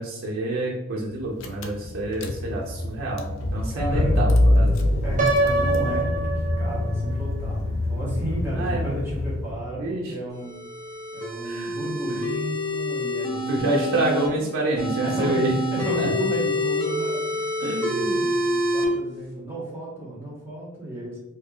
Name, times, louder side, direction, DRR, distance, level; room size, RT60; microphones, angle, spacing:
voice 1, 0.0-4.8 8.6-8.9 9.8-10.1 11.4-11.8 13.5-15.5 16.0-16.1 17.6-18.2, right 1 dB, 85° right, -3 dB, 0.6 m, -27 dB
Car / Engine, 1.1-1.2 1.4-9.8, left 1 dB, 75° left, 0.4 m, -25 dB
voice 2, 3.7-4.2 5.0-10.6 11.1-13.6 15.0-21.2, right 1 dB, 10° right, -8 dB, 1.2 m, -33 dB
Piano, 5.2-7.2, right 2 dB, 40° right, 0.4 m, -25 dB
sound 1, 10.3-14.3 14.8-18.8, left 1 dB, 15° left, 1.1 m, -27 dB
4.5 x 2.3 x 2.3 m, 1.1 s
head